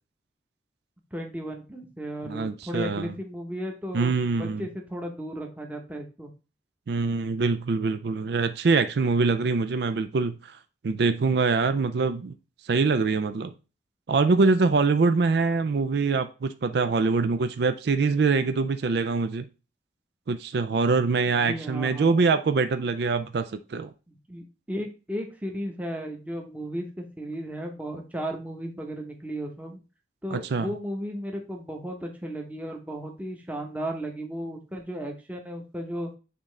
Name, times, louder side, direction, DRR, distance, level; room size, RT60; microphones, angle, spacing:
voice 1, 1.1-6.3 21.3-22.2 24.1-29.8 30.2-36.1, equal, 10° right, 0.9 m, -35 dB
voice 2, 2.3-3.1 3.9-4.7 6.9-10.6 10.8-12.3 12.6-13.5 14.1-19.5 20.3-23.9 30.3-30.7, right 4 dB, 60° right, 0.4 m, -24 dB
8.6 x 3.7 x 3.2 m
head